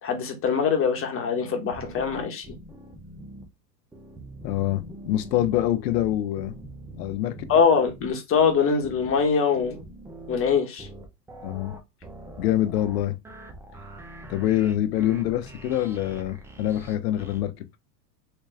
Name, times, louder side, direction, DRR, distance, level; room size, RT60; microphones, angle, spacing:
voice 1, 0.0-2.5 7.5-9.8 10.3-10.9, left 6 dB, 25° left, 1.3 m, -23 dB
sound 1, 1.7-3.4 3.9-17.4, right 1 dB, 5° right, 0.3 m, -43 dB
voice 2, 4.4-6.6 7.0-7.3 11.4-11.8 12.4-13.2 14.3-17.5, left 13 dB, 75° left, 0.8 m, -25 dB
3.3 x 3.1 x 3.3 m
hypercardioid pair, 110°, 50 cm